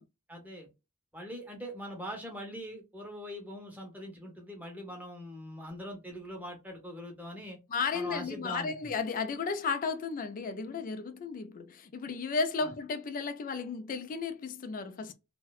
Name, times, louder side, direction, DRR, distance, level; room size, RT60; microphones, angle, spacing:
voice 1, 0.3-0.7 1.1-7.6 7.9-8.7 12.6-12.7, equal, 5° right, 0.7 m, -42 dB
voice 2, 7.7-15.1, left 5 dB, 40° left, 0.3 m, -34 dB
2.6 x 2.1 x 2.3 m
head